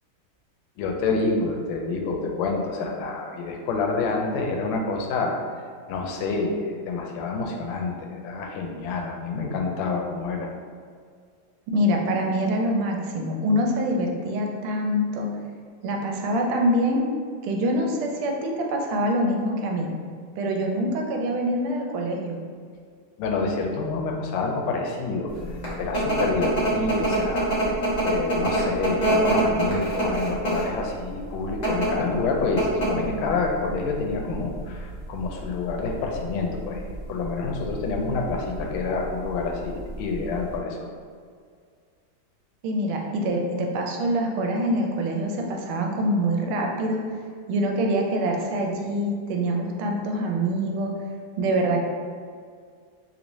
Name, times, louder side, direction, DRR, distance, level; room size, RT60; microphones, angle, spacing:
voice 1, 0.8-5.4 5.9-10.5 23.2-25.3 25.8-27.8 28.0-40.9, left 3 dB, 85° left, 1 dB, 1.4 m, -28 dB
voice 2, 11.7-15.3 15.8-17.0 17.4-19.9 20.4-22.4 42.6-47.2 47.5-50.9 51.4-51.8, equal, 85° right, 1 dB, 1.4 m, -25 dB
sound 1, 25.3-40.6, right 1 dB, 45° left, 0.5 m, -27 dB
3.4 x 3.0 x 2.6 m, 2.1 s
omnidirectional pair, 2.3 m